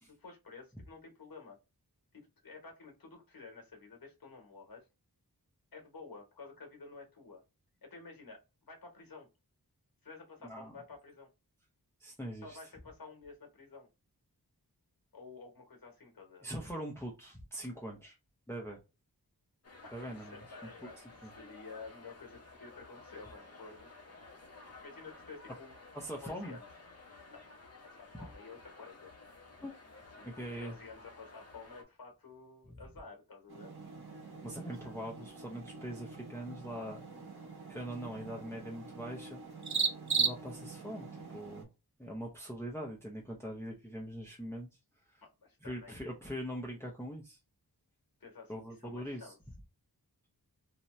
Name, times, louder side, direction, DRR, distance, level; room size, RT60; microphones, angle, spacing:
voice 1, 0.2-1.6 2.1-4.9 5.7-7.4 7.8-9.3 10.0-11.3 12.4-13.9 15.1-16.5 19.8-23.9 24.8-25.8 26.2-26.7 27.3-27.5 28.0-29.1 30.2-33.7 45.2-46.0 48.2-48.5 48.8-49.4, left 4 dB, 65° left, 1.0 m, -51 dB
voice 2, 12.0-12.6 16.4-18.2 18.5-18.8 19.9-20.4 21.2-21.3 25.9-26.6 29.6-29.7 30.2-30.8 34.4-37.0 37.7-39.4 40.2-41.7 42.0-44.7 45.1-45.2 45.6-47.4 48.5-49.3, equal, 5° left, 0.7 m, -42 dB
sound 1, 19.6-31.8, left 3 dB, 40° left, 0.7 m, -54 dB
sound 2, 33.5-41.6, right 4 dB, 80° right, 1.1 m, -48 dB
sound 3, 33.7-40.9, right 6 dB, 50° right, 0.5 m, -38 dB
2.7 x 2.2 x 3.0 m
wide cardioid pair, 70°, 38 cm